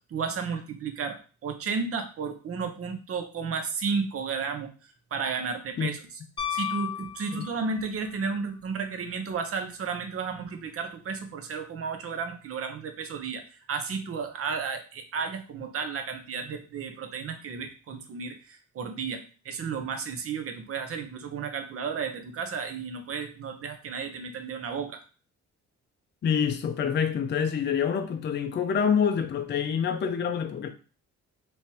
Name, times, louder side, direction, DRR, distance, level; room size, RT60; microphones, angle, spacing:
voice 1, 0.1-4.7 5.1-6.0 6.5-13.4 13.7-25.0, right 5 dB, 50° right, 0.8 m, -33 dB
Piano, 6.4-8.0 10.3-10.4, left 9 dB, 15° left, 1.1 m, -33 dB
voice 2, 26.2-30.7, left 7 dB, 35° left, 0.5 m, -26 dB
3.2 x 3.0 x 2.8 m
cardioid pair, 90°, 30 cm